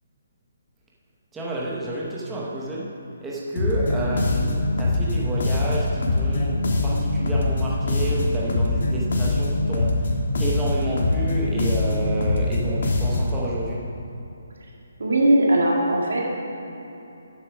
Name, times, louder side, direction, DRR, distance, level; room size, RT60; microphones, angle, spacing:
voice 1, 1.3-3.0 3.2-10.1 10.4-13.9, right 1 dB, 5° right, -5 dB, 0.7 m, -30 dB
sound 1, 3.6-13.4, left 2 dB, 60° left, 1.4 m, -23 dB
voice 2, 15.0-16.2, right 1 dB, 80° right, -2 dB, 2.1 m, -19 dB
7.2 x 6.5 x 6.1 m, 2.9 s
hypercardioid pair, 170°, 0 cm